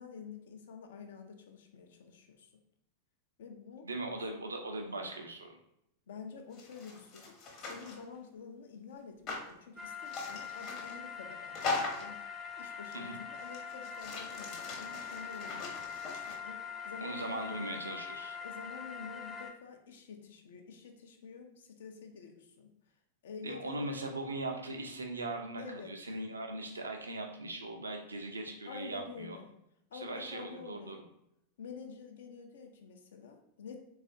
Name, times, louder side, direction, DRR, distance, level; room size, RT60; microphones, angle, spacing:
voice 1, 0.0-2.5 3.4-3.9 6.1-12.2 12.6-17.8 18.4-22.7 23.2-23.9 25.6-25.9 28.7-29.5 29.9-31.0 31.6-33.8, left 5 dB, 60° left, 4 dB, 0.4 m, -49 dB
voice 2, 3.8-5.6 12.9-13.2 17.0-18.4 23.4-29.4 29.9-31.0, right 2 dB, 75° right, 3 dB, 0.5 m, -39 dB
sound 1, 6.5-8.0 9.3-9.5 10.1-11.0 11.5-12.2 12.9-13.0 13.4-16.4, left 3 dB, 35° left, 0.8 m, -40 dB
sound 2, 9.8-19.5, left 7 dB, 10° right, 0.5 m, -43 dB
3.5 x 2.3 x 2.6 m, 0.79 s
figure-of-eight pair, 90°, 0 cm